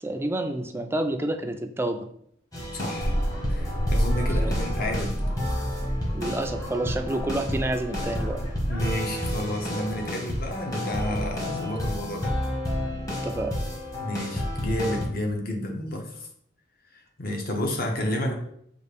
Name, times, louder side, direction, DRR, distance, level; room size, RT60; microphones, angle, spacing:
voice 1, 0.0-2.1 4.3-4.6 6.1-8.4 13.2-13.5, right 1 dB, 15° right, 6 dB, 0.3 m, -29 dB
sound 1, 2.5-15.1, equal, 15° left, 0.9 m, -31 dB
voice 2, 2.7-3.2 3.5-5.2 8.7-12.3 13.9-16.3 16.9-18.3, left 1 dB, 50° left, 2 dB, 0.8 m, -30 dB
sound 2, 3.0-8.9, equal, 75° left, 1.1 m, -30 dB
5.1 x 2.4 x 3.4 m, 0.68 s
head